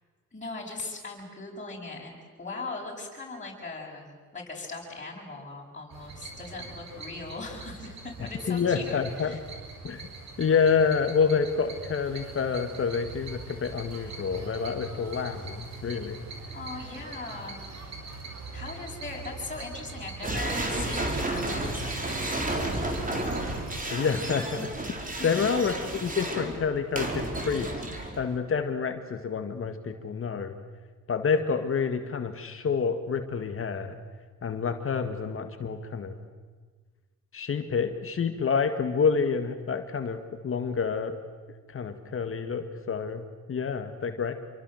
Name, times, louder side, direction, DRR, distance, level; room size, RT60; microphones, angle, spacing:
voice 1, 0.3-9.4 16.5-17.6 18.5-22.4 25.2-25.4, left 3 dB, 25° left, -3 dB, 7.0 m, -39 dB
sound 1, 5.9-23.8, right 4 dB, 60° right, 5.5 m, -42 dB
voice 2, 8.5-9.4 9.8-10.1 10.4-16.3 23.9-27.7 28.2-30.6 31.1-34.0 34.4-36.3 37.3-41.2 41.7-44.3, left 6 dB, 45° left, 7 dB, 1.9 m, -28 dB
sound 2, 20.2-28.4, right 1 dB, 25° right, 4.6 m, -32 dB
27.0 x 23.5 x 7.9 m, 1.5 s
cardioid pair, 90°, 30 cm